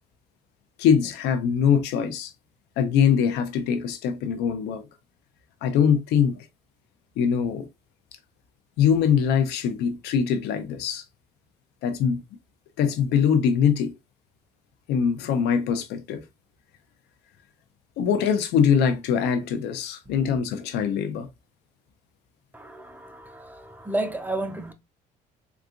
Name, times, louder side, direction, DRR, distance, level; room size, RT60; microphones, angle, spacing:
voice 1, 0.8-2.3 2.8-4.8 5.6-6.4 7.2-7.7 8.8-11.0 11.8-12.2 12.8-13.9 14.9-16.2 18.0-21.3, left 7 dB, 85° left, 0.7 m, -22 dB
voice 2, 22.5-24.7, right 2 dB, 10° right, 0.4 m, -32 dB
3.9 x 2.4 x 2.4 m
cardioid pair, 110°, 17 cm